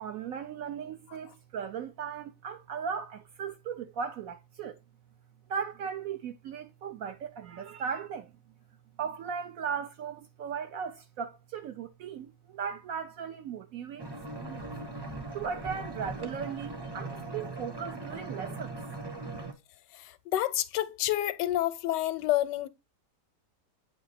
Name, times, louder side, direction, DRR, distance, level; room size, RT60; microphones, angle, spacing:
voice 1, 0.0-4.8 5.5-8.3 9.0-14.1 14.3-14.8 15.3-18.7, right 7 dB, 70° right, 0.8 m, -37 dB
sound 1, 14.0-19.5, right 2 dB, 20° right, 0.7 m, -40 dB
voice 2, 20.3-22.7, left 14 dB, 80° left, 1.2 m, -28 dB
8.3 x 2.8 x 4.0 m
omnidirectional pair, 1.9 m